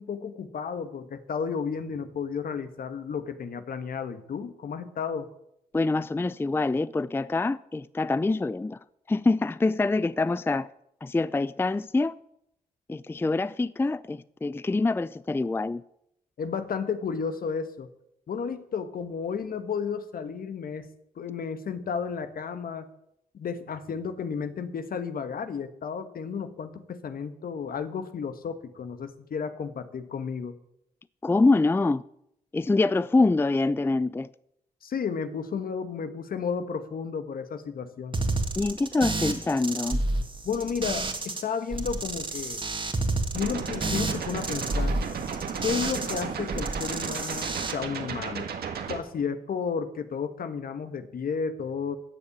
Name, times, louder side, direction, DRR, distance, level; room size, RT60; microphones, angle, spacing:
voice 1, 0.0-5.3 16.4-17.9 18.3-20.9 21.2-22.9 23.3-30.5 34.8-38.2 40.4-42.6 43.3-45.0 45.6-48.5 48.9-52.0, left 6 dB, 65° left, 1.4 m, -32 dB
voice 2, 5.7-8.8 9.1-10.7 11.0-12.2 12.9-15.8 31.2-32.0 32.5-34.3 38.6-40.0, left 3 dB, 15° left, 0.4 m, -25 dB
sound 1, 38.1-41.4 41.7-46.2 46.5-47.7, right 2 dB, 30° right, 1.9 m, -30 dB
sound 2, 43.3-49.0, right 6 dB, 75° right, 1.7 m, -34 dB
13.5 x 7.1 x 8.8 m
cardioid pair, 75°, 16 cm